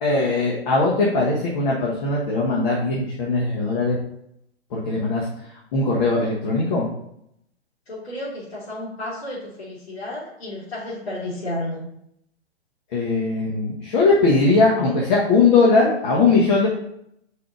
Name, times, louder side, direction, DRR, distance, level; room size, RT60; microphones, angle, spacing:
voice 1, 0.0-4.0 4.7-5.3 5.7-6.9 12.9-16.7, left 3 dB, 45° left, -3 dB, 1.4 m, -19 dB
voice 2, 7.9-11.8, left 1 dB, 70° left, -8 dB, 2.4 m, -32 dB
5.0 x 3.9 x 4.9 m, 0.75 s
hypercardioid pair, 140°, 33 cm